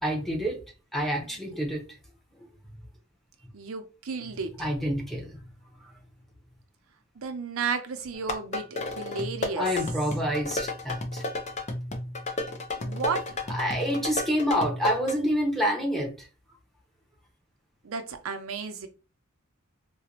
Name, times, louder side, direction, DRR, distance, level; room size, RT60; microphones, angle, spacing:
voice 1, 0.0-0.6 0.9-1.9 2.4-2.5 4.6-5.4 9.6-11.2 13.5-16.3, equal, ahead, 0.8 m, -28 dB
voice 2, 3.5-4.7 7.2-10.1 12.8-13.4 17.8-18.9, right 5 dB, 75° right, 0.6 m, -33 dB
sound 1, 8.1-15.1, left 2 dB, 35° left, 0.6 m, -33 dB
3.9 x 2.2 x 2.9 m
head